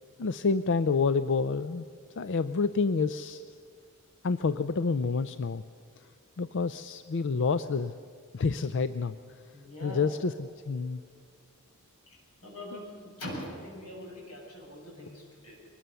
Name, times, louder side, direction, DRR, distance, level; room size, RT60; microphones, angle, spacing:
voice 1, 0.2-1.8 2.2-3.5 4.2-5.6 6.4-7.9 8.3-9.2 9.8-11.0, left 4 dB, 55° left, 12 dB, 0.5 m, -28 dB
voice 2, 9.5-10.1 12.1-15.6, left 1 dB, 90° left, -2 dB, 7.4 m, -43 dB
23.0 x 20.0 x 6.9 m, 2.1 s
head